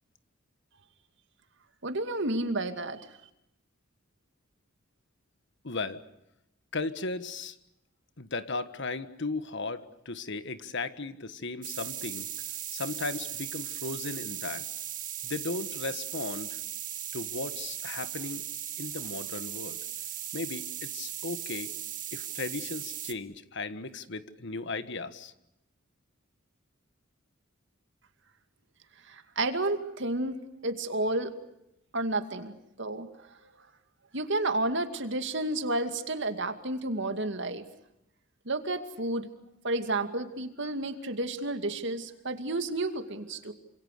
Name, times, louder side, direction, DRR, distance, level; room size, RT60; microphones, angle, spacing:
voice 1, 1.8-3.0 29.1-30.4 30.6-31.3 31.9-33.1 34.1-37.6 38.5-39.3 39.6-43.5, right 2 dB, 60° right, 8 dB, 2.4 m, -31 dB
voice 2, 5.6-6.0 6.7-7.5 8.2-12.3 12.7-14.7 15.2-16.6 17.1-18.4 18.8-19.8 20.3-21.7 22.1-25.3, left 3 dB, 60° left, 12 dB, 1.6 m, -36 dB
sound 1, 11.6-23.1, right 11 dB, 40° right, 2.0 m, -38 dB
27.5 x 26.5 x 6.7 m, 0.84 s
head